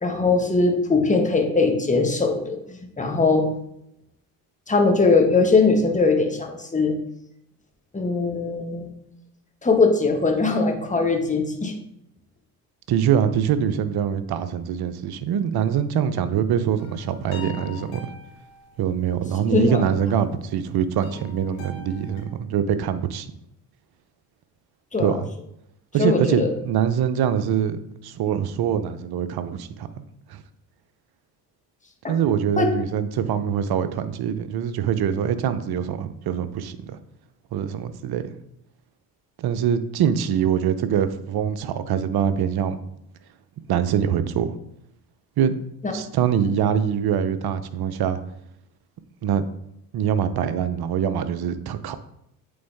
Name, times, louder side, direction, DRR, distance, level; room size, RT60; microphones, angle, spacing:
voice 1, 0.0-3.5 4.7-6.9 7.9-8.9 9.6-11.7 19.5-19.9 24.9-25.1 26.0-26.5 32.0-32.1 32.6-32.7 45.8-45.9, left 3 dB, 15° left, 3 dB, 1.5 m, -20 dB
voice 2, 12.9-18.1 18.8-23.3 25.0-25.3 25.9-30.0 30.3-30.4 32.1-37.0 37.5-38.2 39.4-42.8 43.7-44.5 45.4-45.5 45.9-48.2 49.2-49.4 49.9-51.9, right 8 dB, 55° right, 11 dB, 0.8 m, -24 dB
sound 1, 16.6-22.2, left 5 dB, 75° left, 2.2 m, -44 dB
8.5 x 3.9 x 3.6 m, 0.76 s
hypercardioid pair, 55°, 46 cm